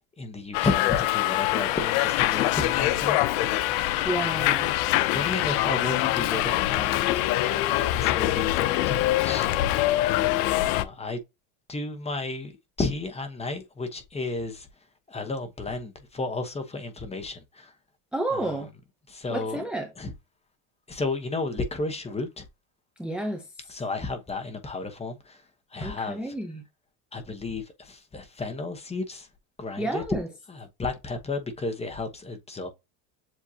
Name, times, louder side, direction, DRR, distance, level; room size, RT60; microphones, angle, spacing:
voice 1, 0.2-3.2 3.7-4.0 5.1-7.6 8.0-8.8 9.2-9.5 9.8-10.2 10.6-11.2 11.7-12.5 12.8-14.7 15.1-17.6 19.1-19.6 20.0-20.1 20.9-22.4 23.7-25.2 25.7-26.2 27.1-27.6 27.9-29.3 29.6-30.0 30.5-32.7, left 3 dB, 15° left, 0.9 m, -32 dB
Subway metro underground, 0.5-10.8, left 15 dB, 80° left, 0.7 m, -24 dB
voice 2, 4.0-4.7 18.1-18.7 19.3-19.9 23.0-23.8 25.8-26.6 29.8-30.3, right 1 dB, ahead, 0.6 m, -31 dB
7.4 x 2.6 x 2.8 m
cardioid pair, 135°, 45 cm